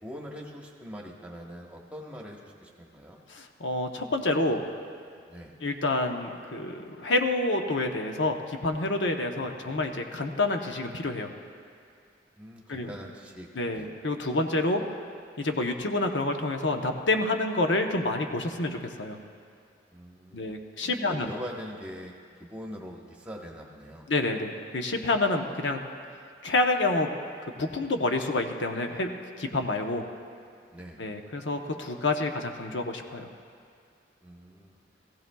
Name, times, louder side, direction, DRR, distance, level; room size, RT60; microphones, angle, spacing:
voice 1, 0.0-3.2 5.3-5.5 12.4-13.5 13.7-13.9 19.9-20.4 20.8-22.1 22.4-24.1 30.7-31.0 34.2-34.8, equal, 5° right, -2 dB, 1.1 m, -43 dB
voice 2, 3.3-4.6 5.6-11.3 12.7-12.9 13.5-14.8 15.4-19.2 20.3-21.4 24.1-25.8 26.4-27.1 27.6-30.0 31.0-33.3, left 2 dB, 80° left, 4 dB, 0.9 m, -28 dB
19.0 x 15.0 x 2.3 m, 2.3 s
head